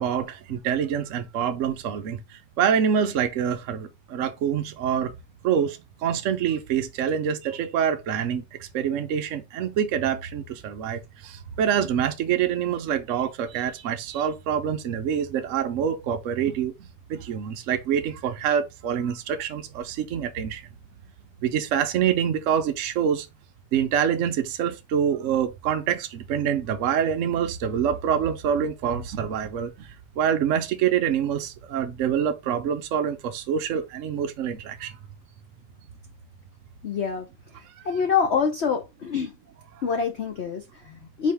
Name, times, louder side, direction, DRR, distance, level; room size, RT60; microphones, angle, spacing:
voice 1, 0.0-2.2 2.6-5.1 5.4-16.7 17.1-20.6 21.4-23.3 23.7-29.9 30.2-34.9 37.8-37.9, right 8 dB, 70° right, 0.7 m, -26 dB
voice 2, 36.8-37.3 37.5-39.4 39.8-41.3, left 6 dB, 75° left, 0.6 m, -26 dB
4.7 x 2.9 x 3.4 m
omnidirectional pair, 2.0 m